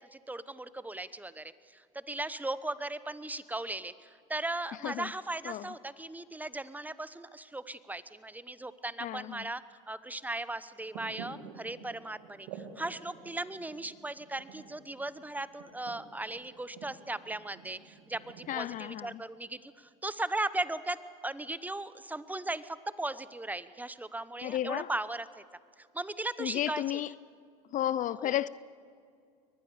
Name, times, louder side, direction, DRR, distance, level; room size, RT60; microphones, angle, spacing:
voice 1, 0.1-9.6 9.9-21.0 21.2-25.4 25.9-27.0 28.2-28.3, right 2 dB, 10° right, 0.9 m, -37 dB
voice 2, 9.0-9.5 18.5-19.2 24.4-24.9 26.4-27.1 27.7-28.5, left 12 dB, 50° left, 0.5 m, -33 dB
sound 1, 10.8-19.0, right 6 dB, 80° right, 2.4 m, -50 dB
22.5 x 19.5 x 7.0 m
supercardioid pair, 85°, 18 cm